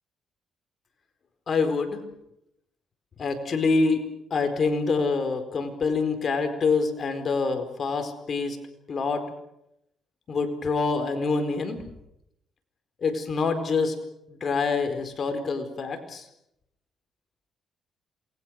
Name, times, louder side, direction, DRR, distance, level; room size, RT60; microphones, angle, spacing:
voice 1, 1.5-2.0 3.2-4.0 4.3-8.6 8.9-9.2 10.3-11.8 13.0-13.9 14.3-16.3, left 4 dB, 50° left, 7 dB, 4.5 m, -26 dB
28.0 x 21.5 x 6.5 m, 0.81 s
cardioid pair, 90°, 0 cm